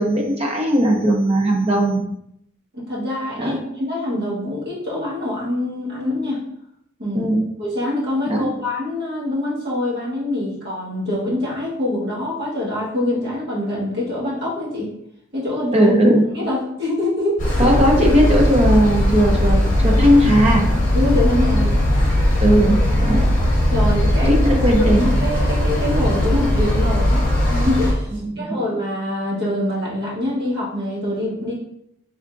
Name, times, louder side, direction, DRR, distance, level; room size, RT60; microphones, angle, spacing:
voice 1, 0.0-2.0 3.4-3.6 7.1-7.4 8.3-8.4 15.7-16.2 17.6-19.6 19.8-20.6 22.4-23.2 24.3-25.0 28.2-28.6, equal, 30° right, 0 dB, 0.7 m, -17 dB
voice 2, 2.7-6.4 7.0-7.3 7.6-14.9 15.3-15.9 16.3-17.5 20.9-21.7 23.0-23.3 23.7-24.5 24.8-31.5, left 1 dB, 50° right, -6 dB, 1.3 m, -24 dB
sound 1, 17.4-27.9, left 1 dB, 40° left, 0.9 m, -18 dB
3.6 x 3.4 x 2.5 m, 0.74 s
head